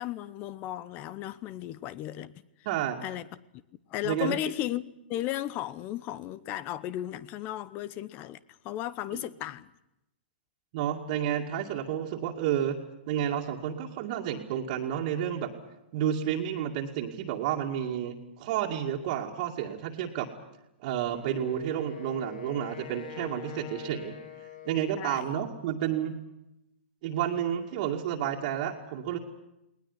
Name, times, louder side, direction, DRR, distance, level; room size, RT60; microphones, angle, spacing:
voice 1, 0.0-2.3 3.0-3.2 3.9-4.8 5.1-8.4 8.6-9.7 24.9-25.3, left 13 dB, 30° left, 0.8 m, -35 dB
voice 2, 2.6-3.0 4.0-4.3 9.1-9.2 10.7-12.8 13.1-15.5 15.9-20.3 20.8-24.2 24.6-26.2 27.0-29.2, right 10 dB, 45° right, 2.4 m, -30 dB
Wind instrument woodwind instrument, 21.1-25.3, left 11 dB, 55° left, 3.6 m, -45 dB
20.0 x 19.5 x 9.9 m
hypercardioid pair, 150°, 6 cm